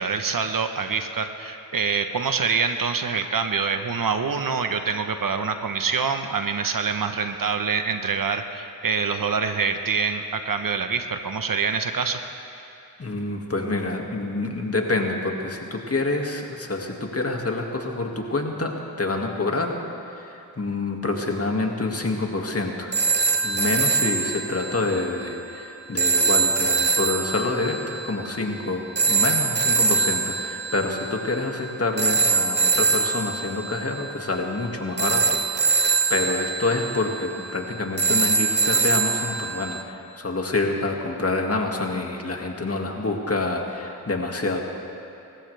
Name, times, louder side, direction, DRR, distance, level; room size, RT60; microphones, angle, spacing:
voice 1, 0.0-12.2, right 5 dB, 55° right, 7 dB, 1.1 m, -25 dB
voice 2, 13.0-19.8 20.2-22.9 23.4-44.6, left 2 dB, 35° left, 2 dB, 2.1 m, -27 dB
sound 1, 22.9-39.8, right 4 dB, 25° right, 1.1 m, -24 dB
25.5 x 14.5 x 3.4 m, 2.8 s
cardioid pair, 45°, 40 cm